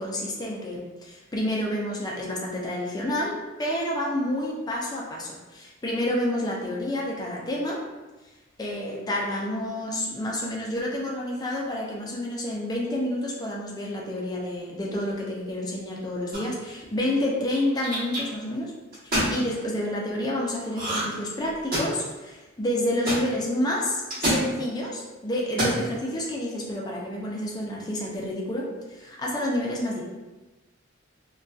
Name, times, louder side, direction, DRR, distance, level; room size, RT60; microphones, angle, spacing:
voice 1, 0.0-7.8 8.6-18.7 19.0-30.0, left 1 dB, 20° left, -3 dB, 0.4 m, -29 dB
sound 1, 16.3-16.7 17.5-18.2 18.9-19.3 20.7-21.2 21.5-22.1 23.1-23.2 24.1-24.4 25.4-25.8, right 1 dB, 45° right, 1.0 m, -26 dB
2.6 x 2.2 x 2.3 m, 1.2 s
head